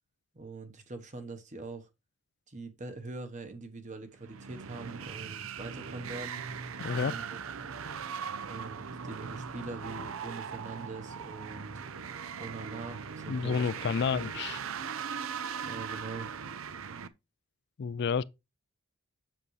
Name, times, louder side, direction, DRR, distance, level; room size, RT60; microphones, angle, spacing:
voice 1, 0.3-1.9 2.5-6.4 6.9-7.4 8.4-11.8 12.4-13.7 14.1-14.4 15.6-16.3, right 3 dB, 35° right, 1.2 m, -43 dB
sound 1, 4.2-17.1, right 6 dB, 70° right, 0.6 m, -39 dB
voice 2, 6.8-7.2 13.3-14.6 17.8-18.2, left 6 dB, 55° left, 0.4 m, -30 dB
7.5 x 6.7 x 3.2 m
head